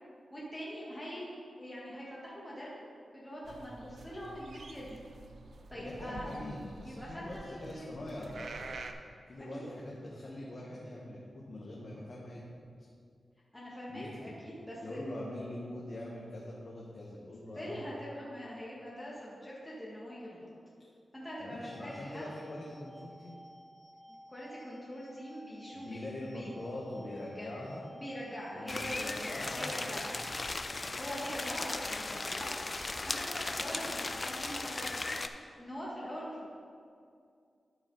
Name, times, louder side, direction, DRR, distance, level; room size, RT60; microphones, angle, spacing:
voice 1, 0.3-1.3 1.6-2.7 3.1-5.0 5.7-6.3 6.8-7.9 9.5-9.8 13.5-15.1 17.5-20.5 21.1-22.2 24.3-26.5 27.4-27.5 28.0-30.1 31.0-32.7 33.1-36.5, equal, 15° left, -6 dB, 1.8 m, -43 dB
sound 1, 3.4-8.9, right 3 dB, 75° right, 0.5 m, -48 dB
voice 2, 5.7-8.7 9.3-12.7 13.9-14.3 14.7-17.8 21.4-23.4 25.7-27.8 28.5-30.3, left 1 dB, 60° left, -5 dB, 1.3 m, -43 dB
sound 2, 21.7-34.7, equal, 5° right, 1.3 m, -54 dB
sound 3, 28.7-35.3, left 2 dB, 40° left, 0.4 m, -37 dB
12.5 x 4.9 x 4.0 m, 2.3 s
cardioid pair, 65°, 0 cm